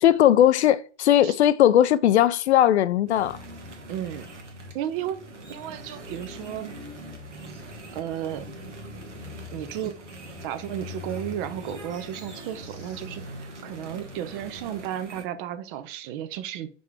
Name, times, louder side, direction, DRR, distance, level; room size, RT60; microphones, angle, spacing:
voice 1, 0.0-3.4, left 11 dB, 70° left, 0.5 m, -18 dB
sound 1, 3.1-15.2, equal, 80° right, 1.4 m, -41 dB
voice 2, 3.9-4.3 4.7-5.2 5.5-6.8 7.9-8.5 9.5-10.0 10.4-16.7, right 11 dB, 50° right, 0.9 m, -33 dB
5.3 x 4.2 x 4.8 m
figure-of-eight pair, 80°, 35 cm